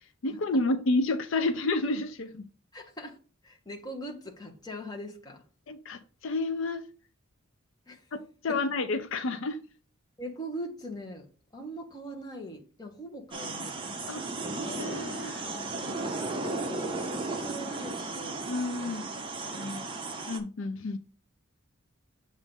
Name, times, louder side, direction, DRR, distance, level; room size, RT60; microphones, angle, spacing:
voice 1, 0.2-2.5 5.7-6.8 8.1-9.6 14.1-14.3 14.6-15.4 18.5-19.1 19.5-19.9 20.3-21.0, left 2 dB, 65° left, 0.5 m, -30 dB
voice 2, 2.7-3.2 3.4-5.4 7.9-8.0 10.2-11.3 11.5-14.1 15.5-18.4 18.8-19.2 19.5-19.9, equal, 20° left, 1.0 m, -42 dB
sound 1, 13.3-20.4, right 3 dB, 25° right, 0.7 m, -35 dB
7.3 x 2.6 x 5.3 m
head